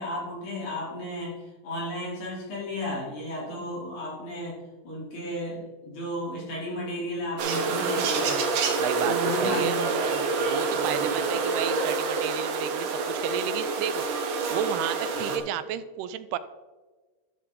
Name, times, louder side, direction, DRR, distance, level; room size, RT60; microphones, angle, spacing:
voice 1, 0.0-1.3 1.6-4.6 4.8-8.4 9.0-10.3 10.7-11.0 15.3-15.4, equal, 50° left, -5 dB, 4.4 m, -33 dB
sound 1, 7.4-15.4, right 4 dB, 70° right, 1.6 m, -27 dB
voice 2, 8.8-9.8 10.5-16.4, right 10 dB, 90° right, 14 dB, 2.6 m, -32 dB
12.5 x 6.7 x 3.7 m, 1.3 s
omnidirectional pair, 4.5 m